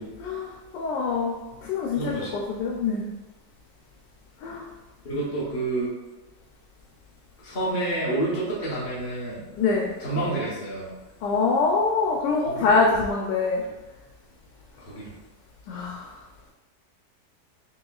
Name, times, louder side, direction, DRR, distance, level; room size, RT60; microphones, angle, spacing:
voice 1, 0.2-3.1 4.4-4.7 9.5-9.9 11.2-13.6 15.7-16.2, left 4 dB, 85° left, -2 dB, 1.2 m, -25 dB
voice 2, 1.9-2.3 5.0-5.9 7.4-9.4 10.0-10.9 12.5-12.7 14.8-15.1, right 2 dB, 35° left, -7 dB, 1.1 m, -28 dB
5.9 x 2.3 x 2.3 m, 1.1 s
omnidirectional pair, 1.8 m